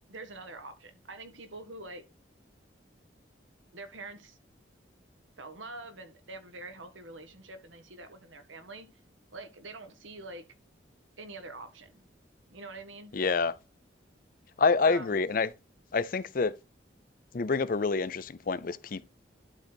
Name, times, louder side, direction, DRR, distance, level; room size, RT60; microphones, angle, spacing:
voice 1, 0.1-2.0 3.7-4.4 5.4-8.9 9.3-10.4 11.2-12.0 12.5-13.2 14.8-15.2, right 2 dB, 90° right, 1.6 m, -45 dB
voice 2, 13.1-13.5 14.6-15.5 15.9-16.5 17.3-19.0, left 4 dB, 45° left, 0.5 m, -27 dB
11.5 x 4.0 x 4.4 m
head